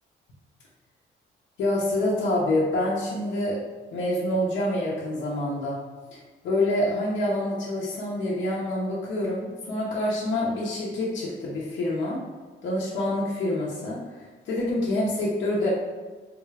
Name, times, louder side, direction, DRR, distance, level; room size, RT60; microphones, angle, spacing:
voice 1, 1.6-3.6 3.9-5.8 6.1-6.2 6.4-12.2 12.6-15.7, left 1 dB, 70° left, -5 dB, 0.8 m, -27 dB
3.8 x 2.3 x 3.2 m, 1.3 s
cardioid pair, 90°, 20 cm